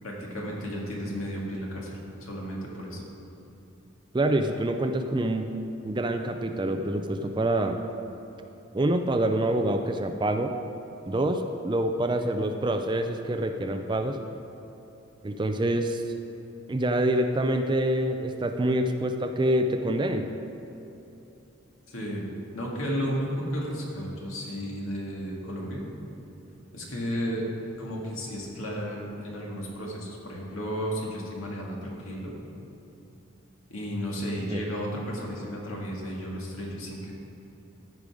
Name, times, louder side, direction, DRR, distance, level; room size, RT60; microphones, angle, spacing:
voice 1, 0.0-3.0 21.9-22.3 22.5-25.8 26.7-27.4 27.8-32.3 33.7-37.1, equal, 85° left, -3 dB, 2.0 m, -33 dB
voice 2, 4.1-5.6 5.8-7.8 8.7-10.5 11.1-14.2 15.2-16.0 16.7-20.3 34.5-34.6, right 1 dB, 20° right, 6 dB, 0.4 m, -26 dB
14.0 x 5.3 x 4.9 m, 3.0 s
head